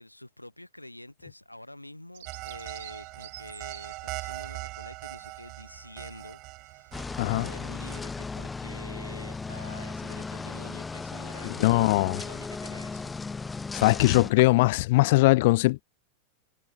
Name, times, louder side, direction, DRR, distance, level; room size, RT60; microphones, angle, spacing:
voice 1, 0.0-7.0 7.3-13.1, left 1 dB, 85° left, 4.7 m, -47 dB
Bird vocalization bird call bird song, 2.1-10.0, right 14 dB, 55° right, 3.0 m, -52 dB
sound 1, 2.3-8.0, right 22 dB, 40° right, 1.0 m, -41 dB
sound 2, 6.9-14.3, left 4 dB, 10° left, 1.0 m, -36 dB
voice 2, 7.2-7.5 11.6-12.2 13.7-15.8, left 21 dB, 50° left, 0.5 m, -21 dB
figure-of-eight pair, 90°, 0 cm